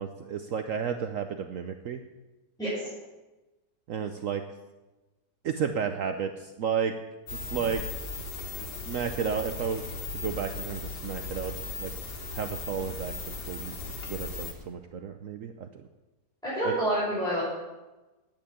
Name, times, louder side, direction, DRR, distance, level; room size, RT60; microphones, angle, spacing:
voice 1, 0.0-2.0 3.9-4.4 5.4-6.9 7.3-7.8 8.6-9.8 10.1-11.9 12.3-13.7 14.1-15.7 16.6-16.8, right 7 dB, 60° right, 7 dB, 1.0 m, -32 dB
sound 1, 7.3-14.5, left 3 dB, 90° left, 2.5 m, -37 dB
voice 2, 16.4-17.4, right 1 dB, ahead, -11 dB, 5.5 m, -27 dB
10.5 x 8.9 x 8.6 m, 1.1 s
omnidirectional pair, 1.7 m